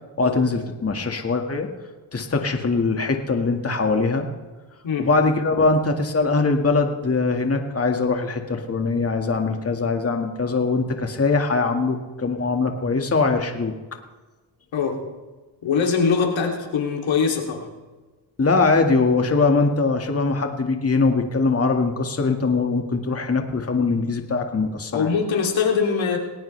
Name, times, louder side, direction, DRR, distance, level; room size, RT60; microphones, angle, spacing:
voice 1, 0.2-1.7 2.1-4.3 5.0-13.7 18.4-25.2, left 3 dB, 30° left, 4 dB, 1.9 m, -22 dB
voice 2, 14.7-15.0 15.6-17.7 24.9-26.2, left 5 dB, 70° left, 1 dB, 2.9 m, -22 dB
20.0 x 18.0 x 3.4 m, 1.3 s
cardioid pair, 75°, 48 cm